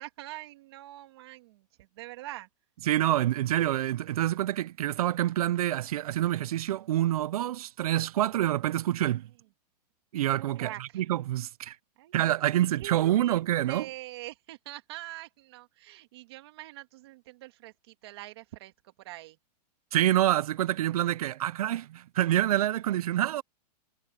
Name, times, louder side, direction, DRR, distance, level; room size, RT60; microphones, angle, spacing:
voice 1, 0.0-2.5 10.6-11.1 12.0-19.4, right 17 dB, 40° right, 2.5 m, -44 dB
voice 2, 2.9-9.3 10.1-10.7 11.0-11.8 12.1-13.8 19.9-23.4, right 13 dB, 60° right, 0.4 m, -27 dB
supercardioid pair, 180°, 21 cm